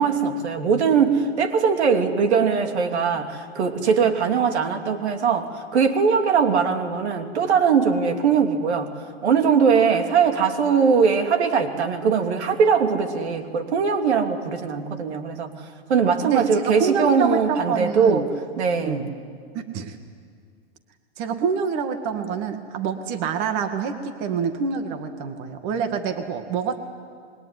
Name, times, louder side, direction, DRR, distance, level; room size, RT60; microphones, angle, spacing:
voice 1, 0.0-15.6 15.9-18.2 18.6-19.0, right 6 dB, 85° right, 5 dB, 2.9 m, -21 dB
voice 2, 16.2-18.3 18.9-19.1 19.5-20.0 21.2-26.8, right 6 dB, 40° right, 7 dB, 2.0 m, -27 dB
27.5 x 22.0 x 9.9 m, 2.1 s
supercardioid pair, 150°, 32 cm